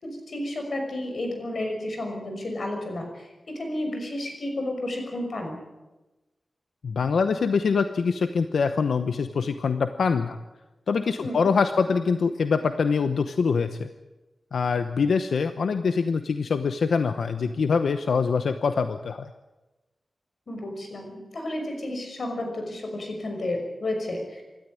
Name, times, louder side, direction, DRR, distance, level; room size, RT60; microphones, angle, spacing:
voice 1, 0.0-5.6 11.2-11.5 20.5-24.4, left 1 dB, 55° left, 3 dB, 6.0 m, -32 dB
voice 2, 6.8-10.4 10.9-13.9 14.5-19.3, left 5 dB, 90° left, 9 dB, 0.9 m, -24 dB
26.5 x 13.5 x 9.9 m, 1.1 s
wide cardioid pair, 130°, 0 cm